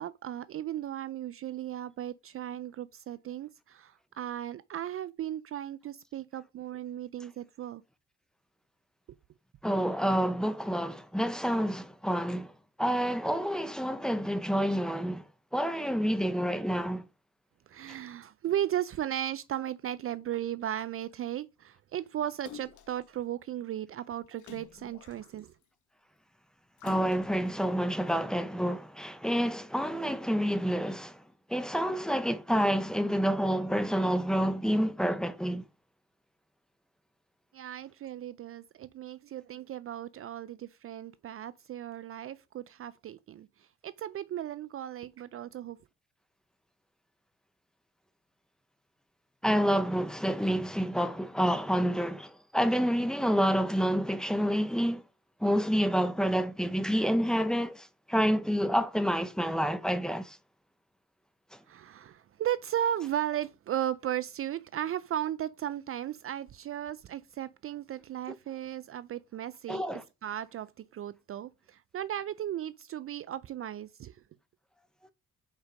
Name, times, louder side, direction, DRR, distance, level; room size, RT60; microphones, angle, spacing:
voice 1, 0.0-7.8 17.7-25.5 37.5-43.5 43.8-45.8 61.7-70.7 70.9-74.2, right 11 dB, 50° right, 0.4 m, -36 dB
voice 2, 9.6-12.5 12.8-15.2 15.5-17.0 26.8-31.2 31.5-35.6 49.4-55.0 55.4-60.4 69.7-70.0, equal, ahead, 0.8 m, -28 dB
Splash splatter, 22.4-23.0 24.4-25.6 26.8-27.6 28.2-28.3, left 10 dB, 80° left, 1.1 m, -49 dB
5.2 x 5.0 x 5.1 m
cardioid pair, 90°, 30 cm